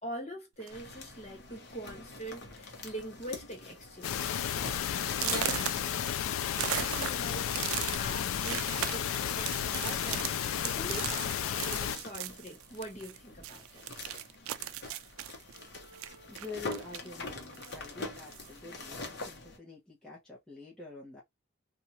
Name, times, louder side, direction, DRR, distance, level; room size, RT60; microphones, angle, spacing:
voice 1, 0.0-4.3 5.2-5.7 6.7-7.5 8.0-13.9, right 1 dB, 35° left, 1.2 m, -43 dB
sound 1, 0.6-0.9 1.7-1.8 2.2-2.5 2.8-3.2 3.7-3.8 4.3-4.4 5.1-13.2 13.4-17.2 17.5-18.6, right 11 dB, 80° right, 0.3 m, -38 dB
sound 2, 0.7-19.6, left 3 dB, 50° left, 0.9 m, -45 dB
sound 3, 4.0-12.0, left 9 dB, 75° left, 0.3 m, -33 dB
voice 2, 16.3-21.2, left 4 dB, 5° left, 0.9 m, -46 dB
2.7 x 2.4 x 2.8 m
head